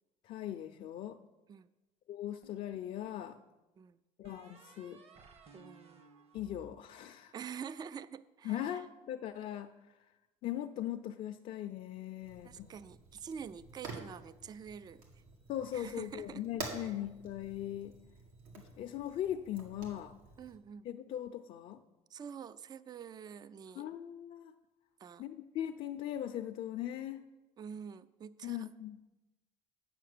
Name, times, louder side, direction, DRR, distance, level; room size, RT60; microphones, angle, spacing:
voice 1, 0.2-1.2 2.1-3.4 4.2-5.0 6.3-7.3 8.4-9.7 10.4-12.7 15.5-17.9 18.6-20.2 20.8-21.8 23.8-24.5 25.2-27.2 28.4-29.0, left 11 dB, 60° left, 6 dB, 0.5 m, -39 dB
sound 1, 2.4-3.3 4.2-7.6, right 3 dB, 45° right, 1.2 m, -59 dB
voice 2, 5.5-6.1 7.3-8.8 12.4-15.2 15.7-16.4 16.7-17.0 20.4-20.9 22.1-23.9 25.0-25.2 27.6-28.7, right 7 dB, 30° right, 16 dB, 0.4 m, -47 dB
Fire, 12.2-20.6, right 3 dB, 85° right, 2.0 m, -49 dB
8.7 x 5.8 x 6.7 m, 1.1 s
cardioid pair, 100°, 14 cm